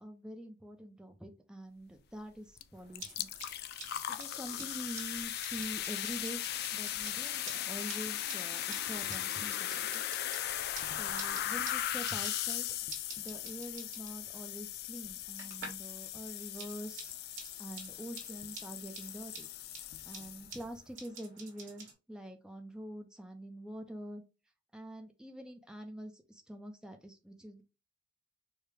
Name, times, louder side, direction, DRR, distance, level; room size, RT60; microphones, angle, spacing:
voice 1, 0.0-3.3 4.1-6.4 6.7-10.0 11.0-12.7 13.2-17.1 17.6-19.5 20.1-24.2 24.7-27.6, right 1 dB, 5° right, 4 dB, 0.5 m, -45 dB
sound 1, 2.6-2.7 2.9-20.7, left 12 dB, 55° left, 0.3 m, -38 dB
sound 2, 2.7-15.9 16.2-21.9, right 4 dB, 75° right, 1.5 m, -51 dB
4.8 x 2.2 x 3.3 m, 0.29 s
head